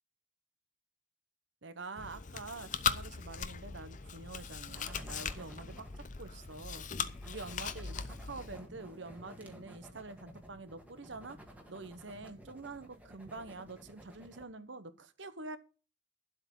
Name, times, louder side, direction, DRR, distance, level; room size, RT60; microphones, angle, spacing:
voice 1, 1.6-5.8 6.2-6.9 7.2-11.4 11.7-15.6, right 3 dB, 65° right, 12 dB, 1.1 m, -46 dB
Chewing mastication, 2.0-8.6, left 6 dB, 40° left, 0.7 m, -39 dB
sound 1, 4.7-14.4, equal, 5° right, 1.6 m, -54 dB
11.5 x 7.9 x 5.3 m, 0.35 s
head